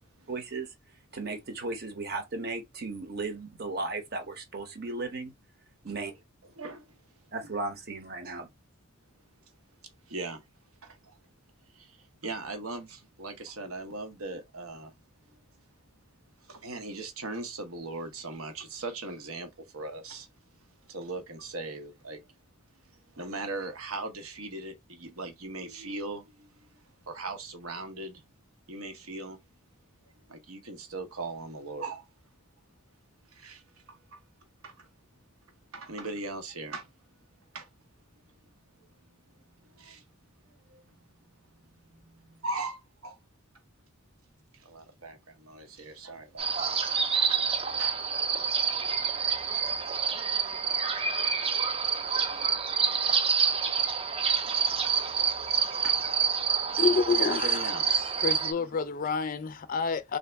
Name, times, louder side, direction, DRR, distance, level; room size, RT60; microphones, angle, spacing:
voice 1, 0.3-0.7 1.1-5.3 5.8-6.1 7.3-8.5, right 3 dB, 45° right, 0.9 m, -35 dB
voice 2, 6.6-7.0 8.2-8.3 10.1-10.4 10.8-11.2 11.7-14.9 15.3-15.4 16.4-20.3 20.8-22.3 22.7-26.8 27.1-28.2 28.7-29.4 30.3-32.1 33.3-34.2 34.6-34.9 35.7-36.9 37.5-37.7 39.6-40.0 40.7-40.8 41.6-43.2 44.5-47.5 47.8-48.1 52.3-52.5 52.9-53.1 54.5-55.1 55.8-56.0 57.2-58.2 58.6-58.7, right 2 dB, 80° right, 1.0 m, -40 dB
sound 1, 46.4-58.5, right 6 dB, 25° right, 0.4 m, -27 dB
voice 3, 56.8-57.7 58.2-60.2, left 5 dB, 40° left, 0.3 m, -28 dB
3.4 x 2.7 x 3.3 m
head